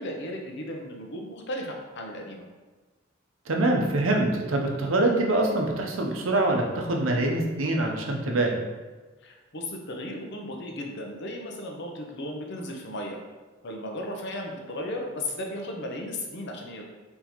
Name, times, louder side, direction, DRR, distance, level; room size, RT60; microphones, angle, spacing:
voice 1, 0.0-2.4 9.2-13.2 13.6-16.8, left 1 dB, 60° left, 2 dB, 0.7 m, -35 dB
voice 2, 3.5-8.5, right 2 dB, 90° right, 1 dB, 0.7 m, -24 dB
4.0 x 3.7 x 3.0 m, 1.3 s
head